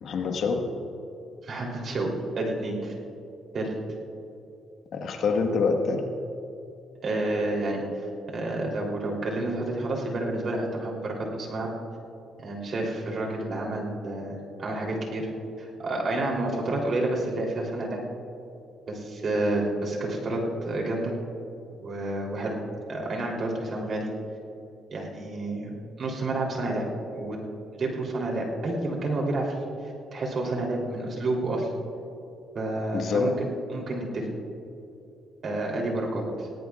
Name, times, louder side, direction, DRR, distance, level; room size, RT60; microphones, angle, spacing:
voice 1, 0.0-0.7 4.9-6.0 32.9-33.3, left 4 dB, 70° left, 4 dB, 1.5 m, -25 dB
voice 2, 1.4-2.9 3.5-3.7 7.0-7.8 8.3-11.7 12.4-15.3 15.6-18.0 18.9-21.1 21.8-22.6 22.9-24.1 24.9-26.9 27.1-27.4 27.8-29.5 30.1-31.7 32.6-33.5 33.7-34.3 35.4-36.5, right 2 dB, 50° right, -1 dB, 3.4 m, -29 dB
19.0 x 18.0 x 2.5 m, 2.7 s
cardioid pair, 90°, 0 cm